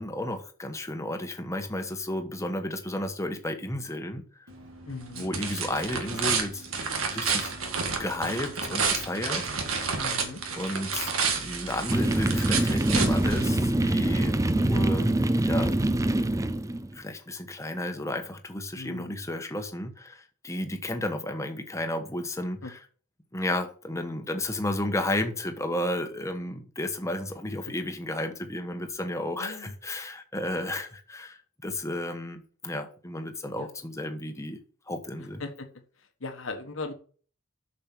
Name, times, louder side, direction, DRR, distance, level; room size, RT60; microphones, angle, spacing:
voice 1, 0.0-4.2 5.1-7.6 8.0-10.0 10.6-11.1 11.3-15.1 15.4-15.8 16.9-22.8 23.3-34.6 34.9-35.4, left 1 dB, 15° left, 1.1 m, -33 dB
sound 1, 4.5-13.9, right 5 dB, 80° right, 1.8 m, -31 dB
voice 2, 4.9-5.3 10.0-10.4 18.7-19.3 22.6-22.7 29.4-29.7 33.6-33.7 35.2-35.7 36.0-36.9, left 3 dB, 70° left, 1.3 m, -39 dB
sound 2, 11.9-16.9, right 1 dB, 15° right, 0.5 m, -24 dB
7.0 x 6.5 x 5.9 m
head